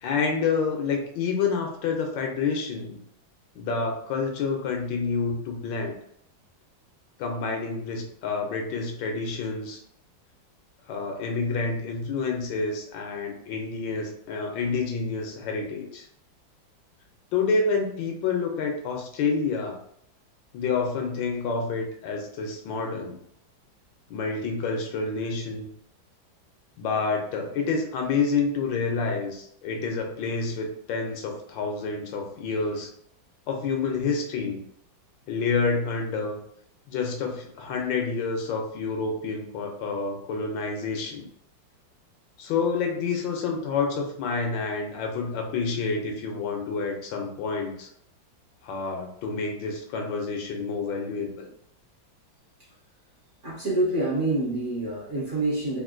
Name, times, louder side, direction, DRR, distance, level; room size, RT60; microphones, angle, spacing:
voice 1, 0.0-3.0 3.6-5.9 7.2-9.8 10.9-16.1 17.3-19.8 20.5-23.2 24.1-25.7 26.8-32.9 33.5-34.6 35.3-36.4 36.9-41.3 42.4-47.9 48.6-51.5, left 4 dB, 75° left, 2 dB, 1.3 m, -28 dB
voice 2, 53.4-55.8, right 2 dB, 45° right, -6 dB, 1.1 m, -26 dB
3.6 x 2.5 x 2.5 m, 0.68 s
omnidirectional pair, 2.1 m